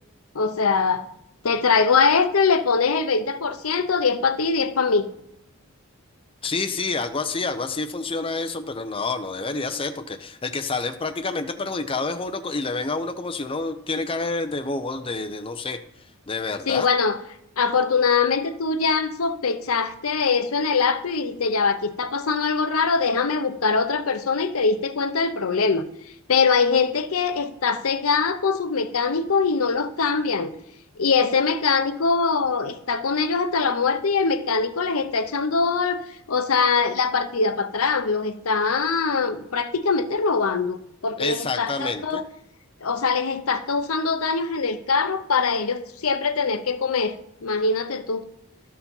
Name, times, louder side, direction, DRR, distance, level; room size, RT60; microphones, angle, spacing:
voice 1, 0.3-1.1 1.4-5.1 16.7-17.2 17.6-25.8 26.3-30.5 31.0-36.0 36.3-40.8 41.0-42.2 42.8-47.2 47.4-48.2, left 5 dB, 80° left, 0.7 m, -22 dB
voice 2, 6.4-15.8 16.3-16.9 41.2-42.2, left 3 dB, 25° left, 0.6 m, -28 dB
12.5 x 4.7 x 5.5 m
head